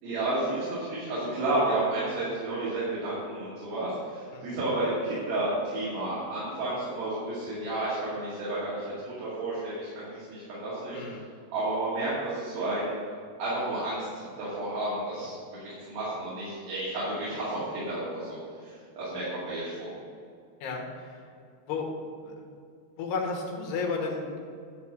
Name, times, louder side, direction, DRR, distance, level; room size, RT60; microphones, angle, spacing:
voice 1, 0.0-11.2 11.5-12.9 13.4-19.9, right 2 dB, 65° right, -10 dB, 4.2 m, -31 dB
voice 2, 10.9-11.3 20.6-21.2 21.7-22.5 23.0-24.4, left 4 dB, 85° left, 0 dB, 3.5 m, -33 dB
12.0 x 4.2 x 7.6 m, 2.3 s
omnidirectional pair, 4.7 m